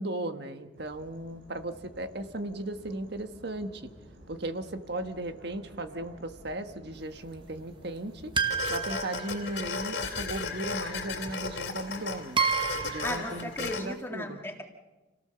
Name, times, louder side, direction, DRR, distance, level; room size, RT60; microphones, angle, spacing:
voice 1, 0.0-3.9 4.3-8.3 8.7-12.4 12.8-14.4, right 1 dB, 55° right, 8 dB, 1.5 m, -36 dB
sound 1, 0.7-8.6, equal, 80° right, 7.2 m, -53 dB
sound 2, 8.4-13.8, left 4 dB, 60° left, 3.3 m, -35 dB
sound 3, 8.4-9.9 11.3-11.4 12.4-13.2, right 6 dB, 25° right, 1.3 m, -30 dB
voice 2, 13.0-14.6, left 1 dB, 10° left, 3 dB, 2.0 m, -36 dB
28.5 x 17.5 x 7.0 m, 1.1 s
head